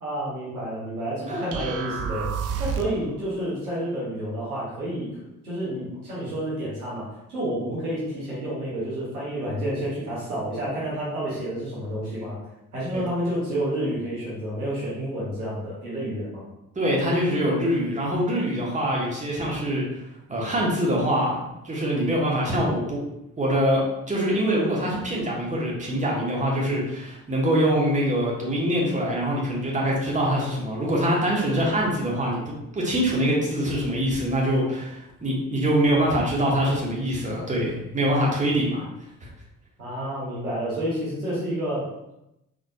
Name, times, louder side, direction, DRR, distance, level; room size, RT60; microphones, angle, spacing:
voice 1, 0.0-2.3 2.6-12.4 12.7-16.4 39.8-41.9, right 1 dB, 85° right, -8 dB, 1.0 m, -29 dB
sound 1, 1.5-3.1, right 7 dB, 40° right, 0.4 m, -29 dB
voice 2, 16.7-19.8 20.3-23.0 23.4-38.8, equal, 15° right, -4 dB, 1.2 m, -24 dB
3.9 x 3.3 x 2.4 m, 0.87 s
figure-of-eight pair, 40°, 43 cm